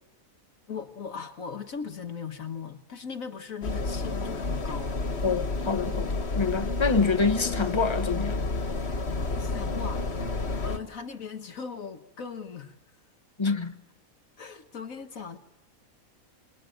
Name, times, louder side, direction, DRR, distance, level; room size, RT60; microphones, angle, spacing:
voice 1, 0.7-4.9 9.4-10.3 10.6-12.8 14.4-15.4, left 6 dB, 70° left, 1.7 m, -38 dB
sound 1, 3.6-10.8, left 3 dB, 45° left, 1.9 m, -30 dB
voice 2, 5.2-8.4 13.4-13.7, left 4 dB, 20° left, 1.1 m, -26 dB
27.5 x 22.5 x 9.1 m
omnidirectional pair, 1.5 m